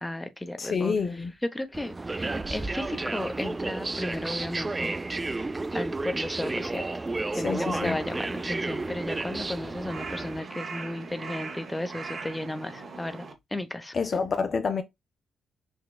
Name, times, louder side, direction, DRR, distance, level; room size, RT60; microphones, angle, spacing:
voice 1, 0.0-1.0 1.5-5.0 5.7-7.0 7.3-13.9, left 1 dB, 15° left, 0.7 m, -34 dB
voice 2, 0.6-1.3 7.3-8.0 13.9-14.8, left 5 dB, 50° left, 0.4 m, -28 dB
sound 1, 1.7-10.4, right 3 dB, 25° right, 0.3 m, -32 dB
Crow, 7.8-13.3, right 4 dB, 55° right, 0.8 m, -40 dB
6.1 x 2.2 x 2.2 m
supercardioid pair, 55°, 0 cm